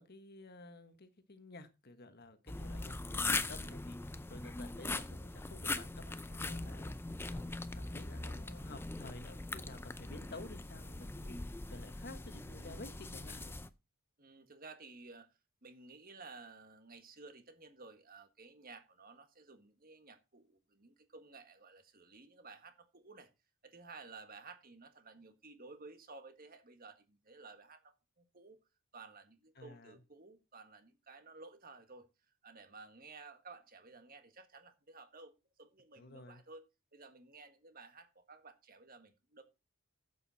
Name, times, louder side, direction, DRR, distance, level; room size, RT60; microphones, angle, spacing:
voice 1, 0.0-13.6 29.6-30.0 36.0-36.4, left 2 dB, 45° left, 1.4 m, -53 dB
sound 1, 2.5-13.7, left 2 dB, 10° left, 0.5 m, -41 dB
voice 2, 14.2-23.3 23.6-28.6 28.9-32.1 32.4-36.6 36.9-39.4, right 3 dB, 40° right, 1.7 m, -55 dB
11.5 x 8.4 x 4.1 m
head